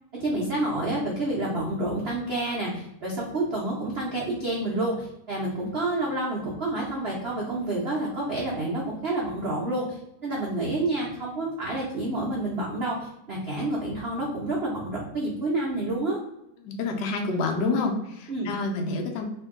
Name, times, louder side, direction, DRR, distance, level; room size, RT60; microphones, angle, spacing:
voice 1, 0.1-16.2 18.3-18.5, right 2 dB, 75° right, -4 dB, 0.5 m, -29 dB
voice 2, 16.6-19.2, left 3 dB, 70° left, 3 dB, 1.2 m, -28 dB
2.9 x 2.7 x 3.6 m, 0.82 s
omnidirectional pair, 2.1 m